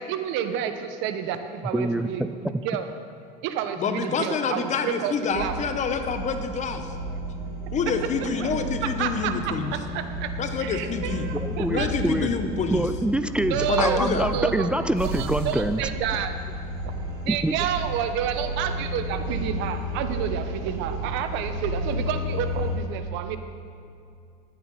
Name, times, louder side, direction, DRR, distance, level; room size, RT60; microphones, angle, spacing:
voice 1, 0.0-2.9 3.4-5.5 8.2-8.5 8.8-10.3 10.6-11.9 13.5-14.7 15.1-16.3 17.2-23.4, right 9 dB, 65° right, 9 dB, 1.0 m, -30 dB
voice 2, 1.7-2.6 11.3-12.3 12.7-15.9 17.3-17.6, right 1 dB, 5° right, 11 dB, 0.3 m, -26 dB
voice 3, 3.8-6.9 7.7-9.8 10.4-11.3 11.7-12.9 13.7-14.3, left 5 dB, 35° left, 7 dB, 1.1 m, -27 dB
sound 1, 5.3-22.7, equal, 85° right, 2.8 m, -32 dB
sound 2, 14.9-16.8, right 5 dB, 45° right, 2.1 m, -35 dB
11.0 x 9.2 x 5.6 m, 2.4 s
supercardioid pair, 110°, 21 cm